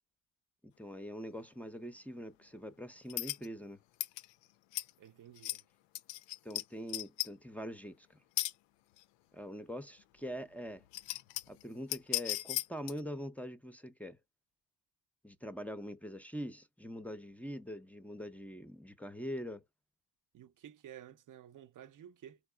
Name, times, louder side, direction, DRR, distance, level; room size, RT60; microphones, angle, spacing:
voice 1, 0.8-3.8 6.4-8.2 9.3-10.8 11.5-14.2 15.2-19.6, equal, 5° left, 0.6 m, -43 dB
sound 1, 3.1-3.5 4.0-4.3 4.7-4.9 5.4-5.6 5.9-6.6 6.9-7.3 8.4-8.5 9.0-9.1 10.3-10.4 10.8-11.6 11.9-13.0, left 16 dB, 70° left, 0.5 m, -36 dB
voice 2, 5.0-5.6 20.3-22.4, right 10 dB, 45° right, 0.7 m, -53 dB
4.7 x 4.2 x 2.2 m
supercardioid pair, 75°, 45 cm